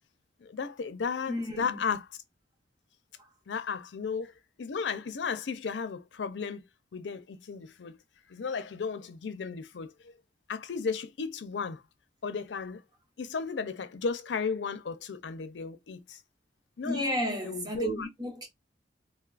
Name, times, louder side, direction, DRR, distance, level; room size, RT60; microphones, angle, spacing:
voice 1, 0.4-2.0 3.5-4.3 4.6-6.6 6.9-8.0 8.3-10.2 10.5-11.8 12.2-12.8 13.2-16.2 16.8-18.1, left 5 dB, 85° left, 0.5 m, -34 dB
voice 2, 1.3-1.8 16.8-18.5, equal, 25° right, 0.8 m, -33 dB
3.4 x 2.3 x 2.4 m
head